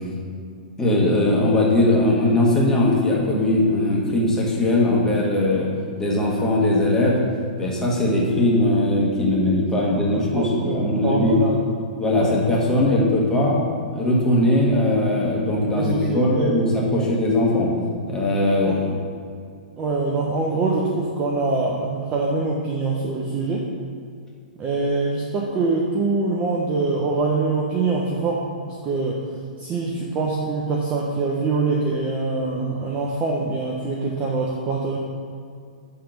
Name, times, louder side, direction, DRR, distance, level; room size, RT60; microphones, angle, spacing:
voice 1, 0.8-5.7 6.0-7.2 7.6-11.4 12.0-13.6 13.9-17.7 18.1-19.0, left 1 dB, 10° left, -4 dB, 1.6 m, -20 dB
voice 2, 9.8-11.6 12.2-12.3 15.8-16.6 16.9-17.1 18.6-18.8 19.8-23.7 24.6-29.2 29.6-35.0, right 3 dB, 25° right, -2 dB, 0.8 m, -24 dB
8.6 x 3.6 x 5.1 m, 2.3 s
hypercardioid pair, 130°, 5 cm